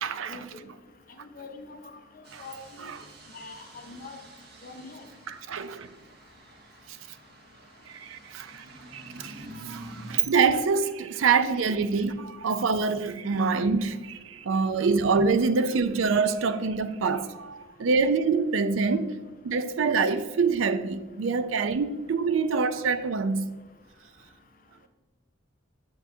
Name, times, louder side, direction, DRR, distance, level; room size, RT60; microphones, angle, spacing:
voice 1, 0.0-0.4 2.3-2.4 2.8-3.0 5.3-5.9 7.9-8.6 8.9-19.2 19.4-23.5, right 5 dB, 80° right, 0.4 m, -26 dB
voice 2, 1.4-2.0 2.4-2.9 3.3-4.2 4.6-5.0, left 3 dB, 45° left, 0.7 m, -43 dB
sound 1, 2.2-10.2, right 1 dB, 55° right, 1.1 m, -48 dB
7.8 x 7.1 x 2.7 m
head